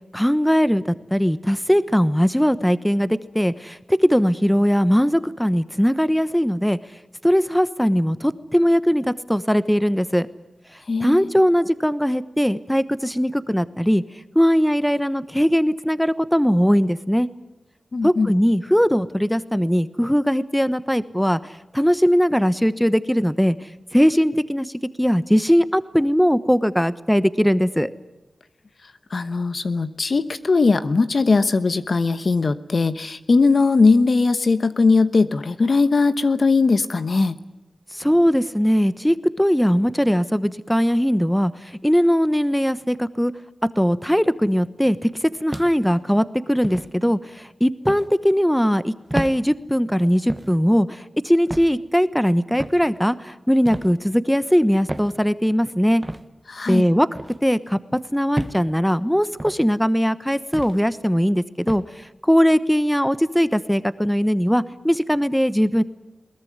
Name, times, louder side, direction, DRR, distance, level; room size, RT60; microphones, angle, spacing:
voice 1, 0.1-6.8 7.2-10.3 11.0-14.0 14.3-17.3 18.0-24.7 25.0-27.9 37.9-43.3 43.8-56.0 56.7-57.1 57.4-65.8, equal, 5° left, 14 dB, 1.1 m, -20 dB
voice 2, 10.9-11.3 17.9-18.3 29.1-37.4 56.5-56.8, left 4 dB, 65° left, 12 dB, 1.1 m, -19 dB
sound 1, 45.5-46.0 46.6-46.9 47.9-48.1 49.1-49.4 50.3-50.5 51.5-51.7 52.6-52.8 53.6-53.9 54.9-55.1 56.0-56.2 57.1-57.4 58.3-58.6 59.4-59.6 60.5-60.8 61.7-61.9, right 1 dB, 25° right, 1.3 m, -30 dB
21.5 x 19.0 x 9.5 m, 1.0 s
cardioid pair, 50°, 0 cm